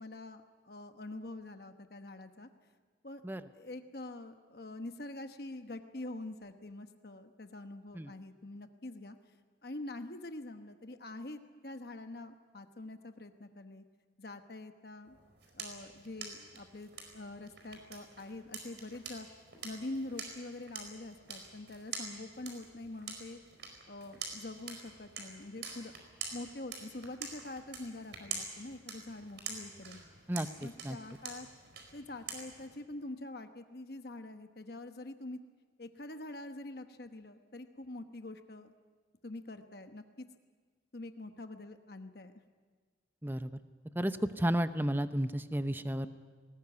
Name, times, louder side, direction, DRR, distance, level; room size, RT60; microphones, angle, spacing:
voice 1, 0.0-2.5 3.0-3.2 3.5-9.2 9.6-13.8 14.2-15.2 15.5-19.3 19.6-23.4 23.9-25.9 26.3-30.0 30.6-31.5 31.9-35.4 35.8-38.7 39.2-40.3 40.9-42.3, left 2 dB, 55° left, 7 dB, 1.1 m, -45 dB
sound 1, 15.0-32.8, right 5 dB, 70° right, 4.7 m, -46 dB
voice 2, 30.3-31.0 43.2-43.6 43.9-46.1, right 1 dB, 10° right, 11 dB, 0.7 m, -33 dB
20.0 x 19.0 x 9.5 m, 1.5 s
head